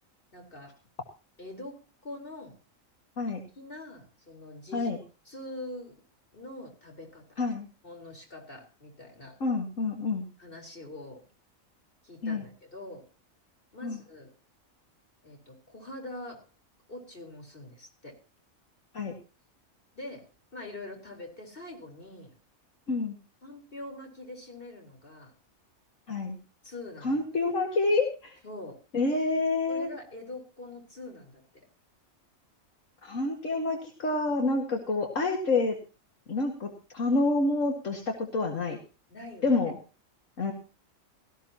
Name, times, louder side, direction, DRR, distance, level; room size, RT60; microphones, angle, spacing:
voice 1, 0.3-0.8 1.4-2.6 3.3-4.9 5.2-6.0 6.3-7.4 7.8-9.4 10.4-11.3 12.0-13.1 13.7-14.3 15.2-16.5 16.9-18.2 19.9-22.3 23.4-25.3 26.6-27.2 28.4-28.8 29.7-31.4 39.1-39.6, left 2 dB, 40° left, 1 dB, 4.5 m, -44 dB
voice 2, 9.4-10.3 12.2-12.5 13.8-14.0 18.9-19.1 22.9-23.2 26.1-26.4 27.0-28.4 28.9-29.9 33.0-35.8 36.3-38.8 39.4-39.7 40.4-40.5, left 3 dB, 70° left, 2 dB, 2.2 m, -28 dB
18.0 x 14.5 x 2.9 m, 0.33 s
omnidirectional pair, 1.4 m